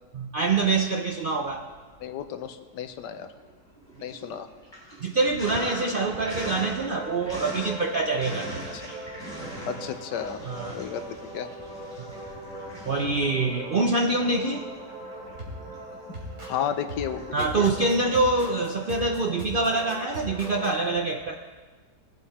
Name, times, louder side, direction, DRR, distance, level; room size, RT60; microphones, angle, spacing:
voice 1, 0.1-1.6 5.0-8.8 10.5-10.8 12.0-12.1 12.9-14.6 17.3-21.3, right 3 dB, 65° right, 3 dB, 0.5 m, -25 dB
Sink (filling or washing), 1.7-2.4 2.8-18.9, right 1 dB, 15° left, 4.2 m, -42 dB
voice 2, 2.0-3.3 4.0-4.5 8.7-8.9 9.7-10.4 10.7-11.5 16.5-17.7, left 8 dB, 90° left, 10 dB, 1.4 m, -33 dB
sound 1, 5.4-20.7, right 1 dB, 45° right, 3.5 m, -40 dB
19.0 x 8.5 x 4.2 m, 1.4 s
omnidirectional pair, 1.8 m